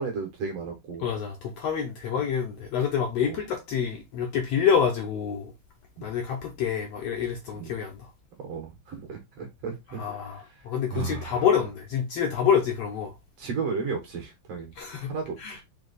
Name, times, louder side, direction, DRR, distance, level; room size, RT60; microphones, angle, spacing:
voice 1, 0.0-1.1 2.2-2.3 3.3-3.4 6.0-6.1 7.6-7.7 8.4-10.0 10.9-11.5 13.4-14.7 15.0-15.4, right 5 dB, 65° right, 1.8 m, -34 dB
voice 2, 1.0-5.5 6.0-8.1 9.9-13.1 14.8-15.1 15.4-15.6, left 7 dB, 75° left, 1.5 m, -27 dB
4.7 x 2.8 x 3.9 m
omnidirectional pair, 3.6 m